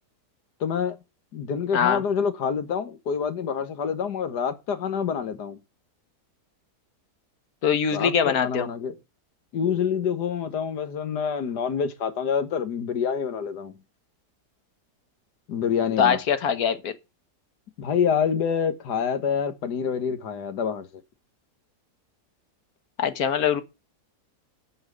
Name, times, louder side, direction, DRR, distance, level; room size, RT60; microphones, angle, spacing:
voice 1, 0.6-1.0 1.3-5.6 7.9-8.9 9.5-13.8 15.5-16.2 17.8-20.9, left 7 dB, 80° left, 1.8 m, -27 dB
voice 2, 7.6-8.7 16.0-16.9 23.0-23.6, left 7 dB, 65° left, 1.6 m, -22 dB
8.7 x 5.8 x 8.1 m
omnidirectional pair, 1.8 m